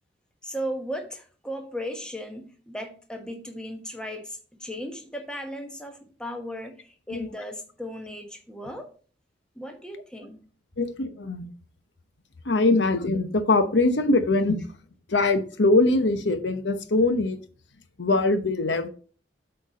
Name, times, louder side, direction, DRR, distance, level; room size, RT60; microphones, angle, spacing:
voice 1, 0.4-8.9 9.5-10.4, equal, 5° left, 3 dB, 1.1 m, -36 dB
voice 2, 10.8-11.5 12.4-14.6 15.1-17.4 18.0-18.9, left 2 dB, 85° left, 9 dB, 0.9 m, -22 dB
8.4 x 4.4 x 5.1 m, 0.41 s
head